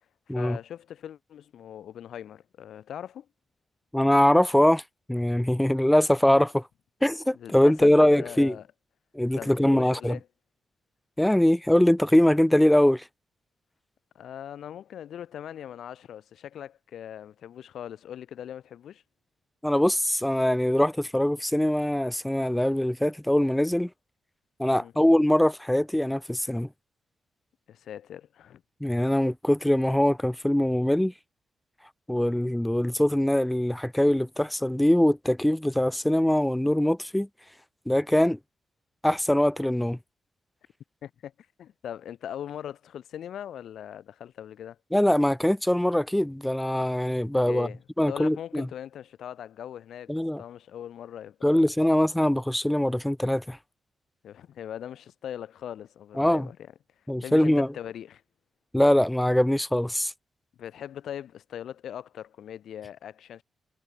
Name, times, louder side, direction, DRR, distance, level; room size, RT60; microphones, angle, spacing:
voice 1, 0.3-3.3 7.3-8.7 9.3-10.3 14.1-19.0 24.7-24.9 27.7-28.6 41.0-41.3 41.6-44.8 47.5-47.8 48.1-51.6 54.2-56.6 57.2-58.2 60.6-63.4, left 10 dB, 85° left, 0.5 m, -40 dB
voice 2, 3.9-4.8 5.1-6.6 7.0-8.6 9.1-10.2 11.2-13.0 19.6-23.9 24.6-26.7 28.8-31.1 32.1-37.3 37.9-38.4 39.0-40.0 44.9-47.7 48.0-48.7 50.1-50.4 51.4-53.6 56.2-56.5 57.1-57.7 58.7-60.1, left 1 dB, 5° left, 0.3 m, -22 dB
cardioid pair, 60°, 0 cm